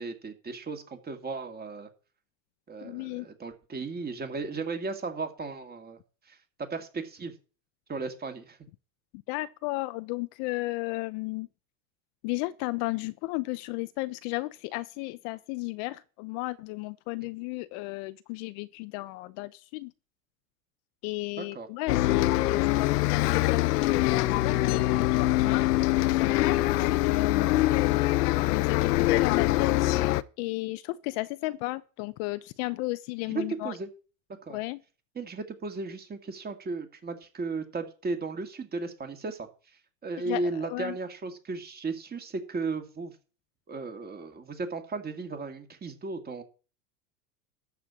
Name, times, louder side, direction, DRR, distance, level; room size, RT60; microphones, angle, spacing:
voice 1, 0.0-1.9 2.7-6.0 6.3-7.3 7.9-8.6 21.4-21.7 33.3-33.9 34.5-34.6 35.2-39.5 40.0-43.1 43.7-46.4, right 3 dB, 20° right, 2.1 m, -35 dB
voice 2, 2.8-3.3 9.3-11.5 12.2-19.9 21.0-28.0 28.5-29.9 30.4-33.8 34.5-34.8 40.2-41.0, left 21 dB, 50° left, 0.7 m, -34 dB
Bus, 21.9-30.2, left 17 dB, 80° left, 0.8 m, -24 dB
13.0 x 4.5 x 8.4 m
supercardioid pair, 130°, 46 cm